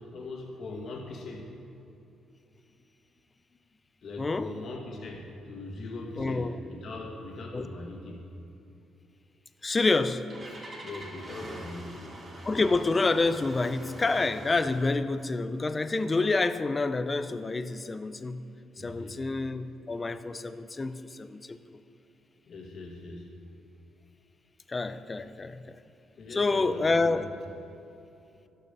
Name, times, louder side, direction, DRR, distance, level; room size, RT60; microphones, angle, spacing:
voice 1, 0.0-1.4 4.0-8.2 10.8-12.1 18.8-19.2 22.5-23.3 26.2-27.2, left 2 dB, 60° left, 0 dB, 1.8 m, -40 dB
voice 2, 4.2-4.5 6.2-6.5 7.5-7.7 9.6-10.2 12.5-18.4 18.8-21.6 24.7-25.6 26.3-27.2, left 3 dB, 25° left, 11 dB, 0.5 m, -28 dB
Engine starting, 9.8-15.0, right 1 dB, 35° right, 2.4 m, -45 dB
12.0 x 6.4 x 6.7 m, 2.8 s
cardioid pair, 90°, 0 cm